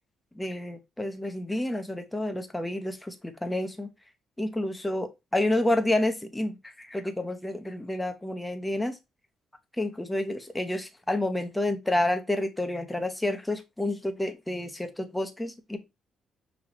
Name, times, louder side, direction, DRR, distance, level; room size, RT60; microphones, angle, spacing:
voice 1, 0.4-3.9 4.4-9.0 9.8-15.8, left 1 dB, 10° left, 0.9 m, -29 dB
5.7 x 3.0 x 3.0 m
cardioid pair, 90°, 0 cm